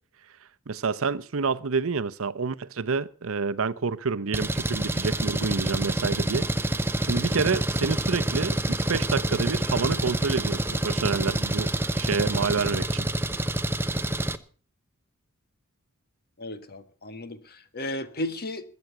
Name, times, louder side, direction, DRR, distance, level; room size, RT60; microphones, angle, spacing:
voice 1, 0.7-6.5 7.1-11.7 12.0-13.1, right 4 dB, 70° right, 0.7 m, -28 dB
Engine, 4.3-14.4, right 1 dB, 10° right, 0.7 m, -27 dB
voice 2, 16.4-18.6, left 1 dB, 45° left, 1.5 m, -34 dB
21.0 x 7.9 x 5.9 m
head